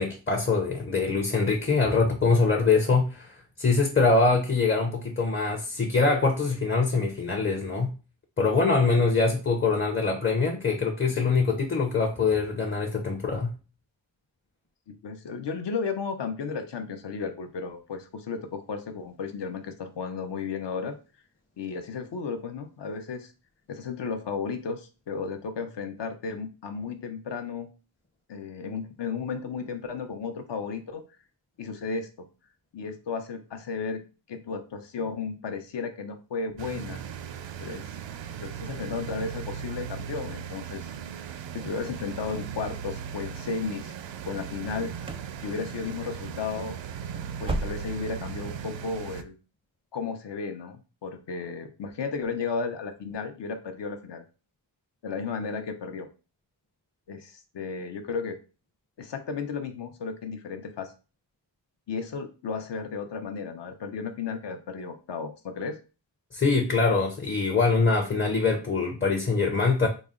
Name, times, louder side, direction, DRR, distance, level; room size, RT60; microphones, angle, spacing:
voice 1, 0.0-7.9 8.4-13.6 66.3-69.9, left 4 dB, 25° left, 0.6 m, -24 dB
voice 2, 14.9-21.0 21.6-23.3 23.7-27.7 28.3-31.0 31.6-32.3 32.7-37.0 37.6-38.0 38.4-40.9 41.2-43.9 44.2-44.9 45.4-46.8 47.4-49.3 49.9-54.2 55.0-56.1 57.1-58.4 59.0-60.9 61.9-65.8, left 5 dB, 65° left, 0.7 m, -34 dB
sound 1, 36.6-49.2, right 7 dB, 75° right, 0.5 m, -38 dB
sound 2, 44.6-45.4 45.6-46.1 46.4-46.5 46.9-48.2 48.5-48.6 49.1-49.2, right 2 dB, 15° right, 0.4 m, -35 dB
4.0 x 2.0 x 3.7 m
cardioid pair, 65°, 45 cm